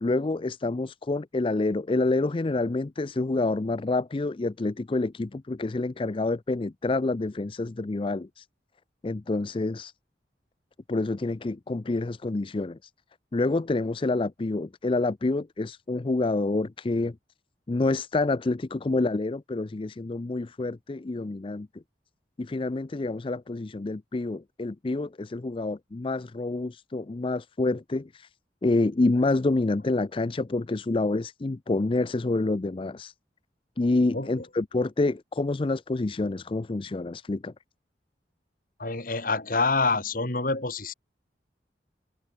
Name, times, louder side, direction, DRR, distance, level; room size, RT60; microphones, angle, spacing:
voice 1, 0.0-8.5 9.0-9.9 10.9-12.8 13.3-17.2 17.7-21.8 22.4-28.3 28.6-33.1 33.8-37.5, left 2 dB, 30° left, 0.4 m, -27 dB
voice 2, 34.1-34.4 38.8-40.9, left 3 dB, 50° left, 3.9 m, -27 dB
head